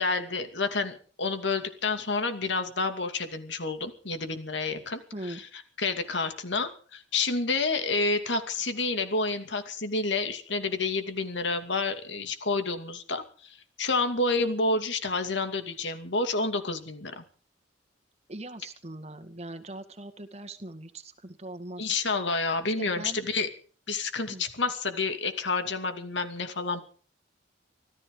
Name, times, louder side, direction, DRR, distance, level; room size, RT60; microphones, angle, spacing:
voice 1, 0.0-5.5 5.8-17.2 21.8-23.5 23.9-26.8, left 3 dB, 70° left, 8 dB, 2.6 m, -29 dB
voice 2, 5.1-5.4 18.3-21.9 22.8-23.2 24.3-24.4, right 1 dB, 35° right, 8 dB, 2.0 m, -41 dB
25.5 x 14.5 x 3.9 m, 0.43 s
head